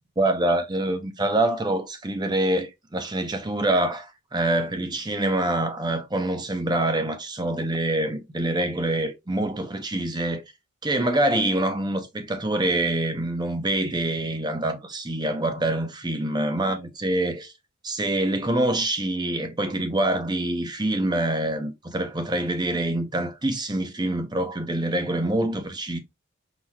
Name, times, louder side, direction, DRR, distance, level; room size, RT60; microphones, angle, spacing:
voice 1, 0.2-10.4 10.8-17.5 17.8-26.0, right 1 dB, 20° right, 0.7 m, -25 dB
5.6 x 3.0 x 2.3 m
head